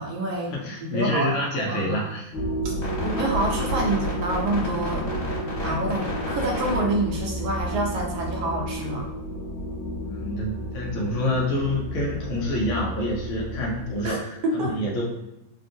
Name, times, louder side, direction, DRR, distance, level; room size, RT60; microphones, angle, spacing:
voice 1, 0.0-1.3 1.7-2.1 2.6-2.7 3.0-5.1 5.6-9.1 14.0-14.8, right 1 dB, 80° right, 0 dB, 1.4 m, -27 dB
voice 2, 0.5-2.3 5.8-6.0 10.0-15.0, left 1 dB, 70° left, -3 dB, 0.7 m, -27 dB
sound 1, 2.3-14.1, equal, 50° left, 1.4 m, -30 dB
3.5 x 2.3 x 2.6 m, 0.91 s
omnidirectional pair, 2.1 m